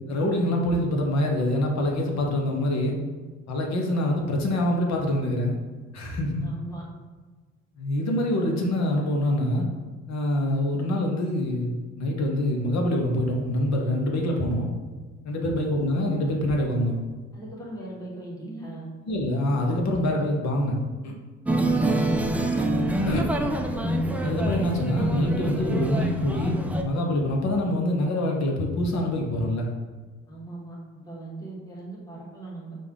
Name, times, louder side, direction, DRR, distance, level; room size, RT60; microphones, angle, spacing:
voice 1, 0.1-3.0 3.5-5.6 5.9-6.5 7.8-9.7 10.1-14.7 15.2-17.0 19.1-21.1 23.0-23.2 24.2-29.7, left 1 dB, 60° left, 1 dB, 1.0 m, -25 dB
voice 2, 6.3-6.8 17.3-18.9 30.3-32.7, right 2 dB, 10° left, -6 dB, 1.4 m, -39 dB
sound 1, 21.4-26.8, right 1 dB, 5° right, 0.3 m, -25 dB
5.3 x 2.6 x 3.6 m, 1.4 s
cardioid pair, 90°, 30 cm